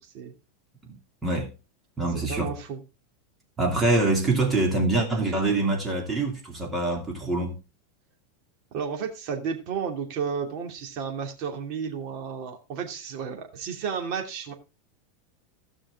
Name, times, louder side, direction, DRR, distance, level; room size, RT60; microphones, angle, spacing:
voice 1, 0.8-1.5 2.0-2.5 3.6-7.6, right 2 dB, 15° right, 2.7 m, -25 dB
voice 2, 2.1-2.8 8.7-14.5, right 6 dB, 45° right, 2.8 m, -32 dB
16.0 x 6.2 x 3.7 m
supercardioid pair, 155°, 0 cm